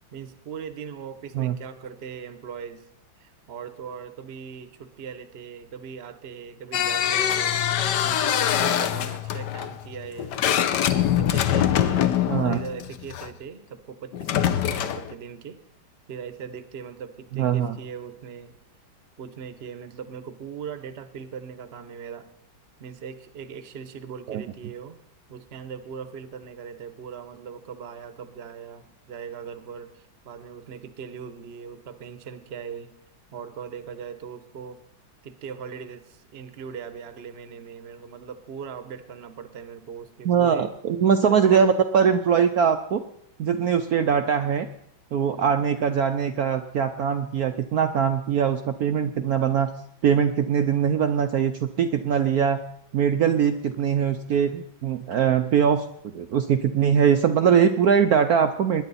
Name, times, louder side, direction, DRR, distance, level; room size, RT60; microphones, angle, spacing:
voice 1, 0.0-2.9 3.2-7.6 8.0-10.4 10.9-15.6 16.1-18.6 19.2-22.3 22.8-25.0 25.3-32.9 33.3-34.8 35.2-40.7 41.2-41.6, right 7 dB, 45° right, 11 dB, 0.9 m, -39 dB
sound 1, 6.7-13.3 14.1-15.1, left 10 dB, 65° left, 1.2 m, -24 dB
voice 2, 12.3-12.6 17.3-17.8 24.3-24.4 40.2-43.0 43.4-44.7 45.1-49.7 50.0-52.6 52.9-55.9 56.1-58.8, right 7 dB, 70° right, 8 dB, 0.9 m, -22 dB
20.5 x 10.0 x 4.1 m, 0.68 s
omnidirectional pair, 2.2 m